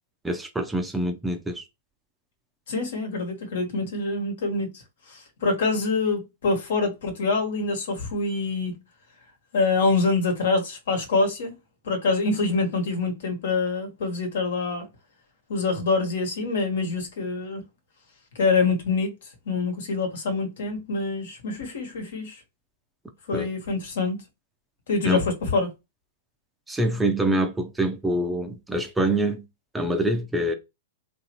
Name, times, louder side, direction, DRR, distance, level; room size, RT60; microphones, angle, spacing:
voice 1, 0.2-1.6 23.3-23.5 25.0-25.2 26.7-29.4 29.7-30.5, right 1 dB, 10° right, 0.5 m, -25 dB
voice 2, 2.7-4.8 5.1-8.8 9.5-11.5 11.8-14.9 15.5-17.6 18.4-19.1 19.5-22.4 23.3-24.2 24.9-25.7, left 3 dB, 70° left, 1.2 m, -25 dB
3.1 x 2.6 x 2.9 m
hypercardioid pair, 120°, 0 cm